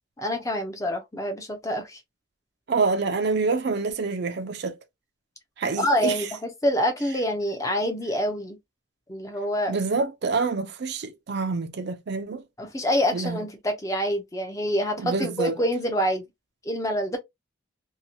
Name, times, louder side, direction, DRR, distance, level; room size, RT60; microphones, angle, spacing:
voice 1, 0.2-2.0 5.8-8.6 9.1-9.8 12.6-16.3 16.6-17.2, equal, 15° left, 0.5 m, -26 dB
voice 2, 2.7-4.8 5.6-6.3 9.7-12.4 13.1-13.4 15.0-15.5, right 4 dB, 50° right, 0.4 m, -27 dB
2.8 x 2.2 x 2.6 m
head